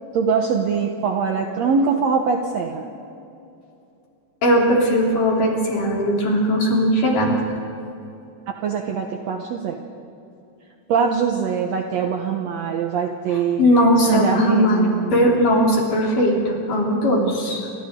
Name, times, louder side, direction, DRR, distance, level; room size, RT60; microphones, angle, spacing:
voice 1, 0.1-2.9 8.5-9.8 10.9-13.6 14.0-15.3, right 6 dB, 65° right, 3 dB, 2.1 m, -23 dB
voice 2, 4.4-7.6 13.6-17.7, equal, 85° left, -2 dB, 5.4 m, -19 dB
29.0 x 26.5 x 3.8 m, 2.7 s
omnidirectional pair, 3.6 m